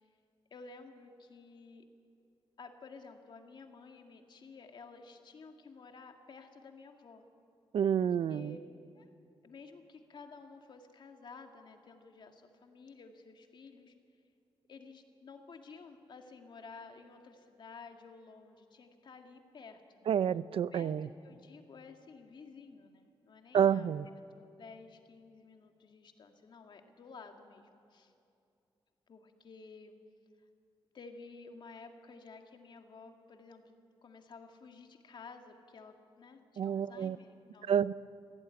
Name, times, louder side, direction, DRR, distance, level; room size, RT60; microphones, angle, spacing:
voice 1, 0.5-1.8 2.6-7.2 8.0-8.6 8.9-9.1 9.4-13.9 14.7-20.1 20.7-20.9 21.2-28.1 29.1-30.0 30.9-37.8, left 4 dB, 55° left, 4 dB, 2.2 m, -53 dB
voice 2, 7.7-8.6 20.1-21.1 23.5-24.1 36.6-37.2 37.7-37.9, right 8 dB, 80° right, 17 dB, 0.5 m, -29 dB
26.5 x 17.0 x 9.8 m, 2.5 s
wide cardioid pair, 165°, 9 cm